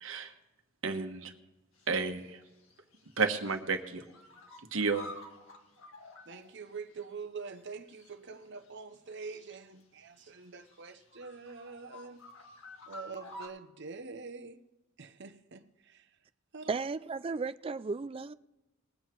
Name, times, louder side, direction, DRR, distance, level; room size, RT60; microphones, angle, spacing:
voice 1, 0.0-0.3 0.8-1.3 1.9-2.4 3.2-4.0 4.7-5.1, right 4 dB, 80° right, 1.3 m, -31 dB
sound 1, 1.7-2.2 2.5-3.6 3.9-7.2 7.5-7.6 7.9-9.8 10.2-13.5, left 2 dB, 85° left, 1.8 m, -51 dB
voice 2, 6.3-12.2 12.9-14.6 15.0-15.6 16.5-16.8, right 4 dB, 60° right, 0.9 m, -45 dB
voice 3, 16.7-18.3, right 4 dB, 30° right, 0.4 m, -34 dB
20.5 x 7.8 x 4.6 m
head